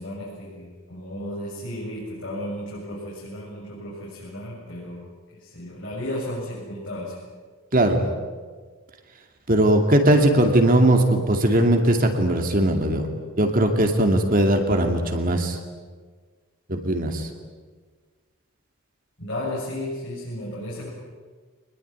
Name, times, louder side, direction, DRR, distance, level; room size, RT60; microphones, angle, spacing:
voice 1, 0.0-5.1 5.4-7.2 19.2-20.9, left 1 dB, 55° left, -5 dB, 7.3 m, -34 dB
voice 2, 7.7-8.1 9.5-13.1 13.4-15.6 16.7-17.3, right 1 dB, 40° right, 4 dB, 2.4 m, -19 dB
25.5 x 20.5 x 9.6 m, 1.5 s
head